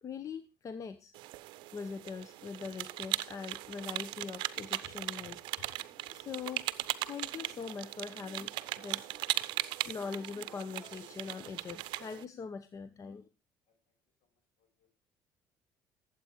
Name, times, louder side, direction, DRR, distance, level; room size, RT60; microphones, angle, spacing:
voice 1, 0.0-1.1 1.7-9.2 9.5-13.2, left 5 dB, 40° left, 11 dB, 0.9 m, -43 dB
sound 1, 1.1-12.2, right 17 dB, 75° right, 0.6 m, -38 dB
voice 2, 13.7-14.3 14.6-14.9, left 7 dB, 75° left, 2 dB, 6.3 m, -80 dB
12.5 x 7.9 x 4.6 m, 0.31 s
supercardioid pair, 90°, 8 cm